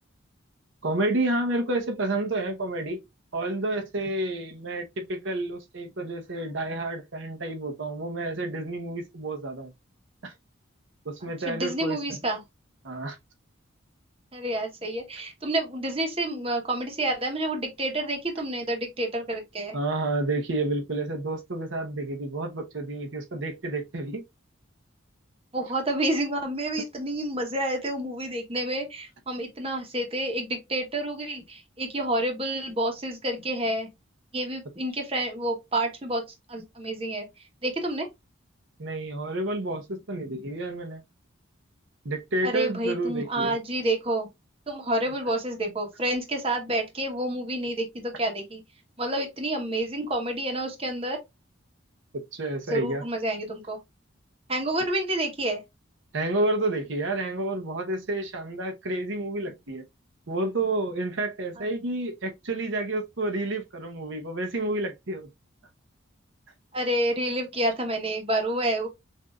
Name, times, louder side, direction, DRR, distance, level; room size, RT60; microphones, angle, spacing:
voice 1, 0.8-3.0 3.3-9.7 10.2-10.3 11.0-12.2 12.8-13.2 19.7-24.2 38.8-41.0 42.0-43.6 52.3-53.0 56.1-59.8 60.3-65.3, right 2 dB, 65° right, 0.8 m, -30 dB
voice 2, 11.5-12.4 14.3-19.8 25.5-33.9 34.3-36.2 36.5-37.3 37.6-38.1 42.4-44.3 44.7-48.6 49.0-51.2 52.7-53.8 54.5-55.6 66.7-68.9, right 1 dB, 30° right, 1.1 m, -29 dB
6.4 x 2.7 x 2.3 m
head